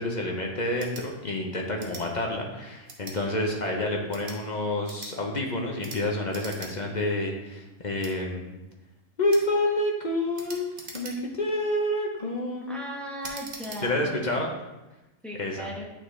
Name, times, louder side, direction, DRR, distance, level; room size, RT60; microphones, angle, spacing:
voice 1, 0.0-8.6 9.2-12.8 13.8-14.5 15.4-15.7, left 1 dB, 40° left, 1 dB, 0.7 m, -28 dB
sound 1, 0.7-1.1 1.8-2.1 2.9-3.2 4.0-4.4 4.8-5.1 5.8-6.0 6.3-6.7 7.1-7.2 8.0-8.1 9.3-9.5 10.3-11.4 12.0-12.3 13.2-13.8, right 3 dB, 45° right, 1.0 m, -42 dB
voice 2, 12.7-14.6 15.2-15.8, right 1 dB, ahead, -3 dB, 1.0 m, -37 dB
8.9 x 3.8 x 3.2 m, 1.0 s
omnidirectional pair, 1.3 m